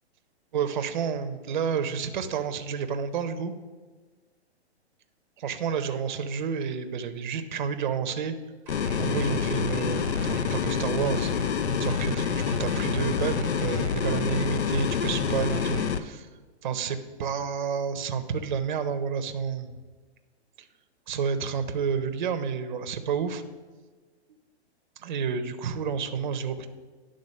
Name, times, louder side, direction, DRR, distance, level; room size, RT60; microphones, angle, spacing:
voice 1, 0.5-3.5 5.4-8.3 9.0-11.3 11.8-16.3 16.6-19.7 20.6-20.7 21.1-23.4 25.0-26.7, right 6 dB, 45° right, 8 dB, 0.6 m, -30 dB
sound 1, 8.7-16.0, left 6 dB, 75° left, 0.6 m, -27 dB
sound 2, 8.7-16.0, right 4 dB, 5° right, 0.8 m, -47 dB
10.0 x 3.8 x 6.4 m, 1.4 s
hypercardioid pair, 165°, 34 cm